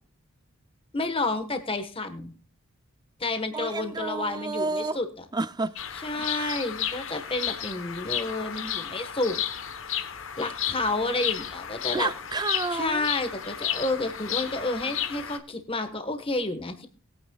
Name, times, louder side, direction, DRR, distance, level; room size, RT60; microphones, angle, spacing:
voice 1, 0.9-2.3 3.2-5.2 5.9-9.4 10.4-12.1 12.7-16.9, left 2 dB, 25° left, 1.4 m, -30 dB
voice 2, 3.5-5.0 5.3-5.7 6.3-6.6 11.9-13.1, right 3 dB, 20° right, 0.5 m, -30 dB
Bird vocalization bird call bird song, 5.8-15.4, left 10 dB, 60° left, 1.2 m, -33 dB
20.0 x 9.4 x 2.4 m
head